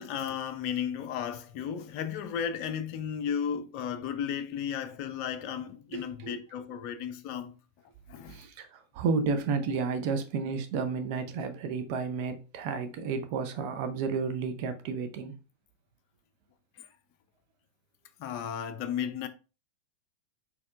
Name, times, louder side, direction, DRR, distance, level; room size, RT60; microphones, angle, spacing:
voice 1, 0.0-7.5 8.1-8.4 18.2-19.3, left 8 dB, 45° left, 0.5 m, -34 dB
voice 2, 5.9-6.4 8.3-15.3, right 5 dB, 45° right, 0.6 m, -32 dB
4.2 x 4.1 x 2.4 m
figure-of-eight pair, 90°, 0 cm